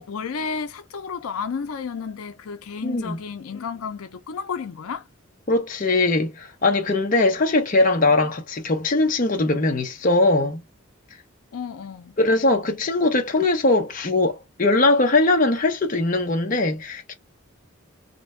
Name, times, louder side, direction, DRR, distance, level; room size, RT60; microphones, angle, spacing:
voice 1, 0.0-5.0 11.5-12.1, left 6 dB, 90° left, 0.5 m, -32 dB
voice 2, 2.8-3.2 5.5-10.6 12.2-17.1, left 2 dB, 40° left, 0.6 m, -21 dB
2.5 x 2.1 x 3.1 m
head